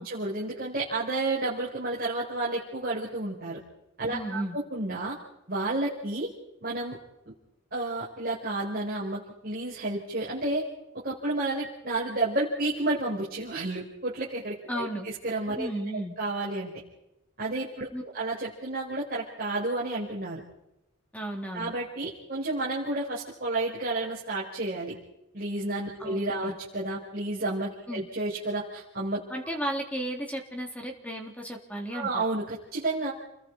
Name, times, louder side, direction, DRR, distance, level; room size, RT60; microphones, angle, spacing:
voice 1, 0.0-3.6 4.0-4.4 4.7-5.2 5.5-6.3 6.6-7.0 7.7-10.6 11.0-15.7 16.2-16.7 17.4-20.4 21.5-25.0 25.3-29.2 31.9-33.1, right 2 dB, 40° right, -5 dB, 4.6 m, -31 dB
voice 2, 4.1-4.6 14.7-15.1 15.6-16.1 17.9-18.0 21.1-21.7 26.0-26.5 27.9-28.1 29.3-32.2, right 1 dB, 5° left, 2 dB, 3.4 m, -34 dB
30.0 x 21.0 x 4.7 m, 0.88 s
head